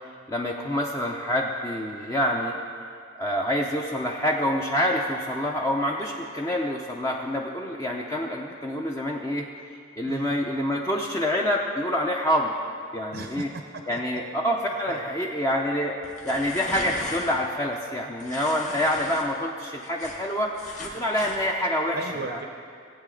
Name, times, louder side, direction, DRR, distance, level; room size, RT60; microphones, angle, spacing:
voice 1, 0.3-2.5 3.2-9.5 10.0-12.5 12.9-13.5 13.9-16.0 16.2-22.0 22.2-22.4, equal, 15° left, 0 dB, 0.5 m, -27 dB
voice 2, 13.1-14.0 14.9-15.1 21.9-22.5, right 3 dB, 55° right, 5 dB, 0.6 m, -36 dB
sound 1, 16.0-17.4 18.2-19.2 19.6-21.4, left 2 dB, 35° left, 1.4 m, -37 dB
17.5 x 8.3 x 3.8 m, 2.3 s
head